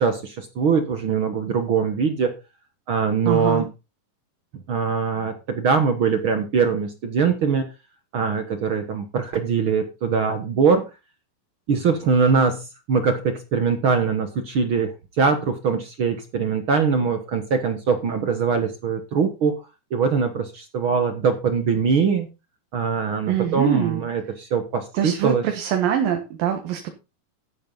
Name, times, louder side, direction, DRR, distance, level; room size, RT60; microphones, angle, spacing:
voice 1, 0.0-2.3 2.9-3.7 4.7-7.6 8.1-10.8 11.7-19.6 19.9-22.3 22.7-25.4, right 5 dB, 55° right, 7 dB, 1.5 m, -22 dB
voice 2, 3.3-3.6 23.3-24.0 24.9-26.9, right 9 dB, 80° right, 4 dB, 3.1 m, -23 dB
12.5 x 10.0 x 3.9 m, 0.28 s
omnidirectional pair, 4.0 m